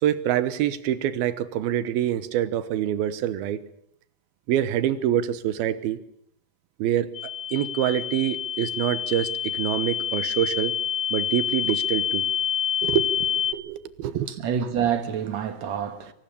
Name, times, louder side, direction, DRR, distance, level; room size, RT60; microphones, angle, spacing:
voice 1, 0.0-3.6 4.5-6.0 6.8-7.1 7.5-10.7 11.1-12.2 12.8-14.3, right 11 dB, 80° right, 3.0 m, -26 dB
sound 1, 7.2-13.5, left 9 dB, 75° left, 1.2 m, -27 dB
voice 2, 14.3-16.1, right 8 dB, 60° right, 2.1 m, -27 dB
23.0 x 19.0 x 8.6 m
omnidirectional pair, 4.3 m